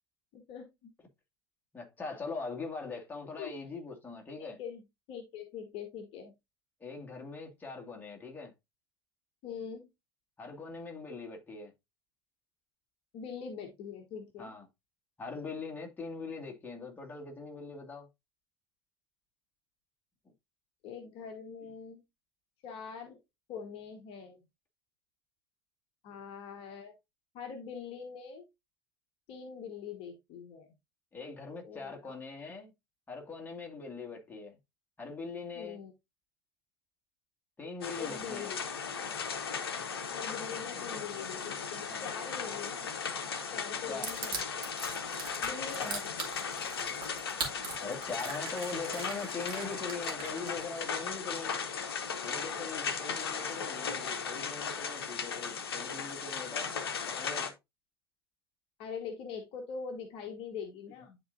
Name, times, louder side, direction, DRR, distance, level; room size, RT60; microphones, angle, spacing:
voice 1, 0.3-0.9 3.4-3.7 4.4-4.8 5.1-6.3 9.4-9.9 13.1-14.5 20.8-22.0 22.6-23.2 23.5-24.5 26.0-26.9 27.3-28.5 29.3-30.7 31.6-32.2 35.5-35.9 38.0-38.6 40.1-42.9 43.5-44.4 45.4-46.0 58.8-61.2, left 6 dB, 45° left, 1.3 m, -43 dB
voice 2, 1.7-4.6 6.8-8.5 10.4-11.7 14.4-14.6 15.2-18.1 31.1-32.7 33.1-34.6 35.0-35.8 37.6-38.5 41.9-42.1 43.9-44.1 45.8-46.1 47.8-51.6 52.2-56.7 57.1-57.5, left 4 dB, 15° left, 2.1 m, -41 dB
sound 1, 37.8-57.5, left 6 dB, 70° left, 1.0 m, -37 dB
Crushing, 44.0-50.8, right 4 dB, 35° right, 2.6 m, -40 dB
11.0 x 4.0 x 2.6 m
figure-of-eight pair, 75°, 13 cm